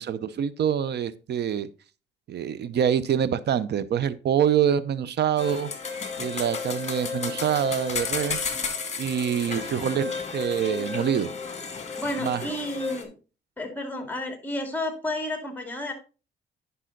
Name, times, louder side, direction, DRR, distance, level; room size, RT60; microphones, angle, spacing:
voice 1, 0.0-1.7 2.3-5.7 6.2-8.4 9.0-11.3 12.2-12.4, right 9 dB, 60° right, 16 dB, 0.7 m, -25 dB
sound 1, 5.4-13.0, left 5 dB, 35° left, 2.3 m, -32 dB
voice 2, 12.0-13.1 13.6-15.9, left 1 dB, 10° left, 6 dB, 2.4 m, -31 dB
10.0 x 5.6 x 3.9 m, 0.33 s
cardioid pair, 90°, 20 cm